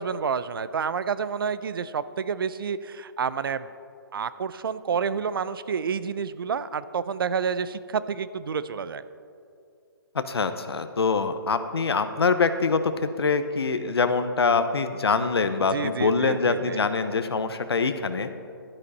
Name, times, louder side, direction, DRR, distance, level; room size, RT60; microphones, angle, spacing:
voice 1, 0.0-3.7 4.1-9.0 15.7-16.8, right 6 dB, 65° right, 15 dB, 0.5 m, -29 dB
voice 2, 10.1-18.3, left 4 dB, 90° left, 10 dB, 0.9 m, -24 dB
12.0 x 10.5 x 4.2 m, 2.4 s
hypercardioid pair, 160°, 13 cm